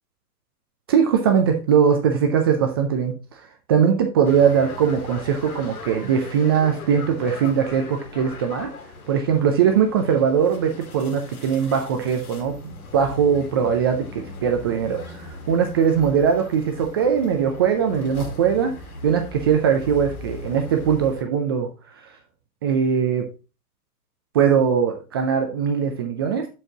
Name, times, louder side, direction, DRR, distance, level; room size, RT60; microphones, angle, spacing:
voice 1, 0.9-3.2 3.7-8.7 9.1-18.8 19.0-21.7 22.6-23.3 24.3-26.5, right 7 dB, 20° right, 0.4 m, -20 dB
sound 1, 4.2-21.2, left 2 dB, 65° left, 1.9 m, -39 dB
12.0 x 4.6 x 2.8 m
hypercardioid pair, 120°, 46 cm